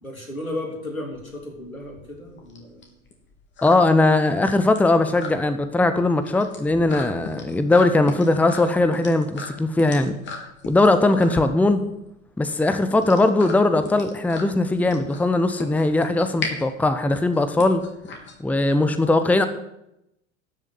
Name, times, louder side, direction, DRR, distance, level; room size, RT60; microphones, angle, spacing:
voice 1, 0.0-2.9, left 1 dB, 90° left, 1 dB, 3.6 m, -34 dB
sound 1, 1.1-18.9, left 4 dB, 30° left, 3.5 m, -37 dB
voice 2, 3.6-10.1 10.7-11.8 12.4-17.8 18.4-19.5, left 2 dB, 5° left, 10 dB, 0.9 m, -19 dB
12.5 x 7.4 x 9.5 m, 0.83 s
figure-of-eight pair, 85°, 40 cm